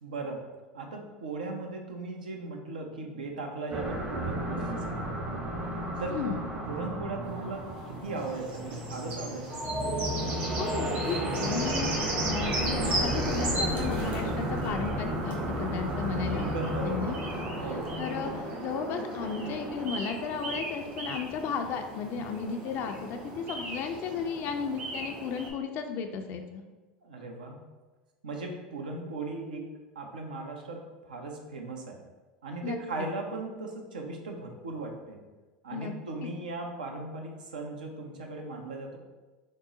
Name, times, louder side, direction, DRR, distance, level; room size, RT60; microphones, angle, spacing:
voice 1, 0.0-5.0 6.0-6.2 6.7-9.8 16.3-17.1 17.6-18.0 27.0-27.6 28.2-32.0 32.4-35.2 35.6-39.0, right 3 dB, 85° right, 2 dB, 0.5 m, -38 dB
sound 1, 3.7-18.4, right 1 dB, 30° right, 0.7 m, -33 dB
sound 2, 7.3-25.5, right 1 dB, 50° right, 1.1 m, -37 dB
voice 2, 10.5-16.5 16.8-26.7 32.6-32.8 35.7-35.9, left 6 dB, 50° left, 5 dB, 0.3 m, -34 dB
3.7 x 2.0 x 3.7 m, 1.2 s
hypercardioid pair, 85°, 4 cm